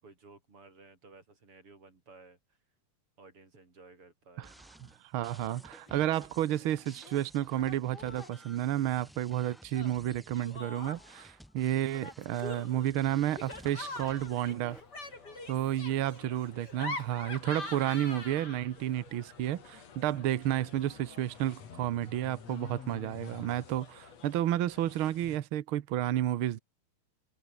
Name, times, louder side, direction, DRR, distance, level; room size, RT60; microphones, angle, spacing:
voice 1, 0.0-2.6 3.2-4.6 13.2-13.7 15.5-16.2 20.2-20.8, right 3 dB, 40° right, 6.8 m, -56 dB
sound 1, 4.4-14.8, equal, ahead, 2.2 m, -56 dB
voice 2, 5.1-14.8 15.5-26.6, right 12 dB, 85° right, 1.1 m, -31 dB
Laughter, 5.9-6.3 6.6-7.2 7.6-8.4 9.7-11.2 11.9-18.9, left 2 dB, 30° left, 5.9 m, -44 dB
sound 2, 13.6-25.4, left 6 dB, 50° left, 3.8 m, -52 dB
omnidirectional pair, 3.9 m